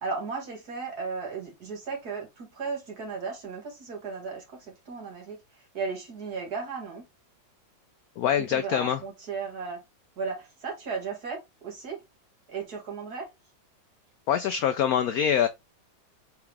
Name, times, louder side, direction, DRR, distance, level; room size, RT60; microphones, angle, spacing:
voice 1, 0.0-7.1 8.4-9.8 10.2-12.0 12.5-13.3, right 5 dB, 50° right, 2.1 m, -35 dB
voice 2, 8.2-9.0 14.3-15.5, left 9 dB, 85° left, 0.8 m, -24 dB
4.7 x 3.5 x 3.2 m
omnidirectional pair, 2.1 m